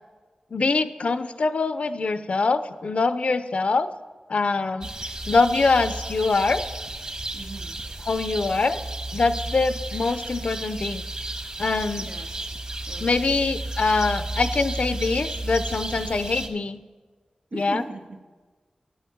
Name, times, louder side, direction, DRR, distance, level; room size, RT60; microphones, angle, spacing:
voice 1, 0.5-3.9 4.3-4.9 5.3-6.6 8.1-8.8 9.1-11.0 11.6-12.1 13.0-16.8 17.5-17.8, left 3 dB, 65° left, 12 dB, 0.6 m, -24 dB
sound 1, 4.8-16.5, right 2 dB, 40° right, 1.4 m, -33 dB
voice 2, 7.3-7.9 12.0-12.4 12.9-13.3 17.5-18.2, right 3 dB, 80° right, 3 dB, 1.3 m, -38 dB
9.9 x 9.5 x 7.0 m, 1.4 s
wide cardioid pair, 95°, 2 cm